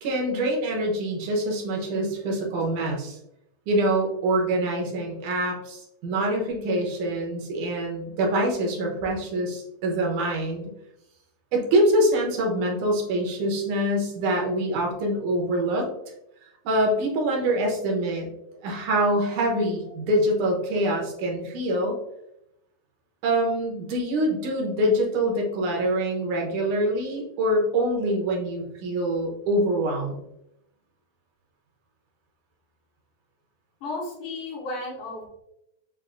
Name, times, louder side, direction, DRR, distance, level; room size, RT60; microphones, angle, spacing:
voice 1, 0.0-3.2 3.7-10.6 11.5-15.9 16.7-18.3 18.6-22.0 23.2-30.2, right 1 dB, 75° right, 0 dB, 2.4 m, -25 dB
voice 2, 33.8-35.3, left 2 dB, 80° left, -5 dB, 3.0 m, -33 dB
7.4 x 2.6 x 2.5 m, 0.83 s
omnidirectional pair, 3.5 m